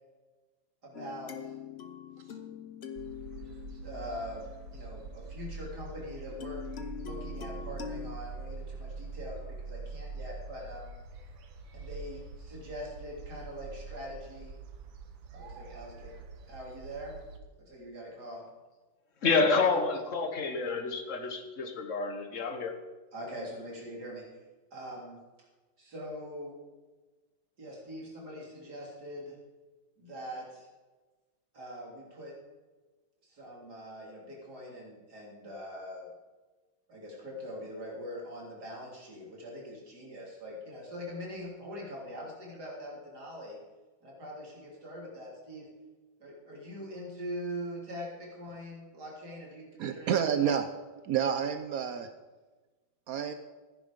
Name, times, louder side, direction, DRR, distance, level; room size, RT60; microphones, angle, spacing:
voice 1, 0.8-1.5 3.3-4.4 4.7-6.7 7.0-10.9 11.7-14.5 15.3-16.1 16.5-17.2 17.6-18.4 19.4-19.5 23.1-24.3 24.7-25.2 25.8-26.5 27.6-29.4 30.0-30.7 31.5-32.3 33.2-36.1 36.9-43.6 44.0-45.7 46.2-50.5, equal, 50° right, -3 dB, 3.7 m, -43 dB
sound 1, 0.9-5.2 6.4-8.2, left 8 dB, 75° left, 0.5 m, -44 dB
sound 2, 2.9-17.4, right 4 dB, 70° right, 1.8 m, -44 dB
voice 2, 19.2-22.7, left 4 dB, 40° left, 6 dB, 1.4 m, -28 dB
voice 3, 49.8-50.7 51.0-52.1 53.1-53.3, right 8 dB, 85° right, 8 dB, 0.7 m, -29 dB
15.0 x 10.0 x 5.1 m, 1.3 s
omnidirectional pair, 2.3 m